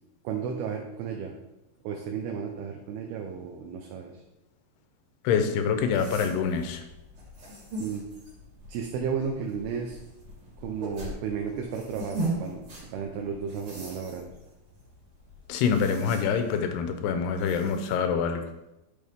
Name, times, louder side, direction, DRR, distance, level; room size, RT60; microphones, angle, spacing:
voice 1, 0.2-1.4 1.8-4.2 7.8-8.1 8.7-10.0 10.6-14.3, right 6 dB, 80° right, 2 dB, 2.7 m, -33 dB
voice 2, 5.2-6.8 15.5-18.4, left 6 dB, 90° left, 7 dB, 2.9 m, -26 dB
sound 1, 5.6-18.0, right 2 dB, 45° right, 3.5 m, -40 dB
10.0 x 6.6 x 3.6 m, 0.93 s
omnidirectional pair, 4.6 m